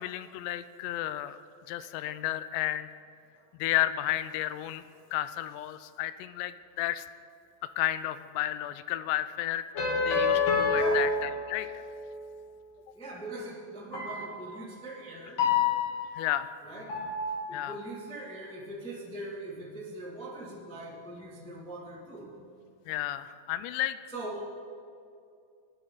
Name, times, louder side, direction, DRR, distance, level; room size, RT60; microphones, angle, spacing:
voice 1, 0.0-1.4 1.7-2.9 3.6-4.8 5.1-7.1 7.6-9.7 10.0-11.8 16.2-16.5 17.5-17.7 22.9-24.0, left 14 dB, 85° left, 13 dB, 2.7 m, -32 dB
sound 1, 9.7-11.9 13.9-14.5 15.4-16.3 16.9-17.7, left 4 dB, 50° left, 4.0 m, -28 dB
voice 2, 10.7-11.1 12.9-15.4 16.6-16.9 17.3-22.5 24.1-24.4, right 1 dB, 5° left, -5 dB, 0.7 m, -41 dB
19.5 x 11.5 x 4.0 m, 2.5 s
omnidirectional pair, 4.9 m